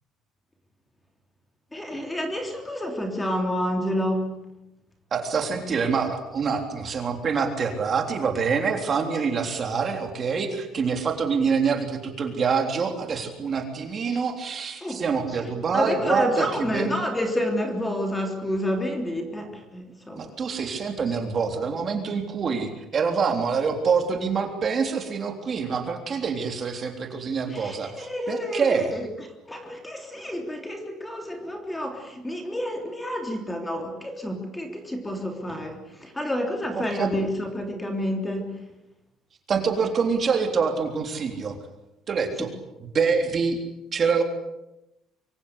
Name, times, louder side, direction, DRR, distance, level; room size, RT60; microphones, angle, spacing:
voice 1, 1.7-4.3 14.1-14.2 14.8-15.0 15.4-20.3 27.4-29.1 29.5-38.5, equal, 5° left, 4 dB, 3.4 m, -29 dB
voice 2, 5.1-16.9 20.2-28.9 36.7-37.1 39.5-41.6 42.1-42.5 42.9-43.6 43.9-44.2, right 5 dB, 30° right, 4 dB, 3.5 m, -26 dB
25.5 x 25.0 x 8.2 m, 0.90 s
cardioid pair, 175°, 0 cm